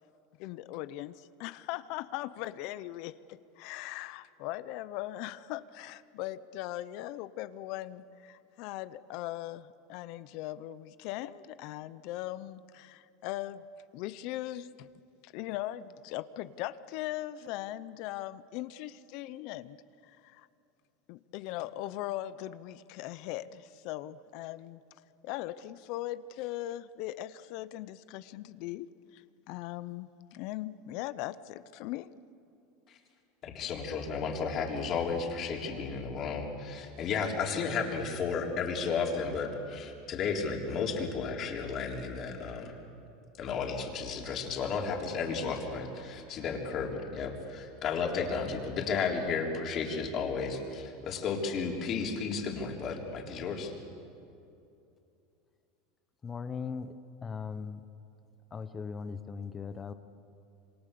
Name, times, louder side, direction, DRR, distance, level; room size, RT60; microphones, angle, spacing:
voice 1, 0.4-13.6 13.9-14.9 15.2-19.8 20.0-20.5 21.1-24.8 25.2-28.9 29.1-32.1, left 15 dB, 60° left, 15 dB, 0.7 m, -39 dB
voice 2, 33.4-42.8 43.4-53.7, left 5 dB, 40° left, 1 dB, 3.8 m, -33 dB
voice 3, 56.2-56.9 57.2-57.8 58.5-59.9, left 5 dB, 20° left, 11 dB, 0.9 m, -38 dB
27.0 x 24.5 x 6.9 m, 2.7 s
supercardioid pair, 135°, 0 cm